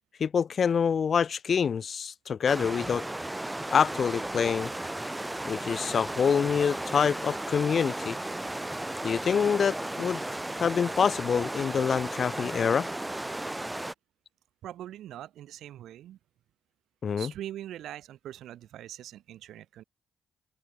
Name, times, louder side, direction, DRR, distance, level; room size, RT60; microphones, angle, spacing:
voice 1, 0.2-3.1 3.7-4.7 5.5-8.2 9.0-10.2 10.6-12.9 17.0-17.3, left 7 dB, 55° left, 0.3 m, -26 dB
sound 1, 2.5-13.9, right 1 dB, 15° right, 3.1 m, -35 dB
voice 2, 14.6-16.2 17.2-19.8, right 12 dB, 70° right, 3.1 m, -42 dB
open air
hypercardioid pair, 45°, 0 cm